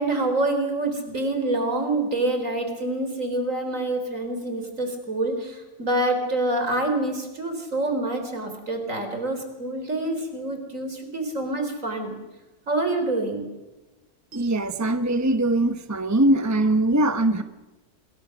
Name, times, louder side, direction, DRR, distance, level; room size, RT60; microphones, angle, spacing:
voice 1, 0.0-12.2 12.7-13.4, right 2 dB, 55° right, 6 dB, 4.2 m, -26 dB
voice 2, 14.3-17.4, right 1 dB, 15° right, 9 dB, 0.9 m, -21 dB
27.0 x 22.5 x 6.5 m, 1.1 s
omnidirectional pair, 1.6 m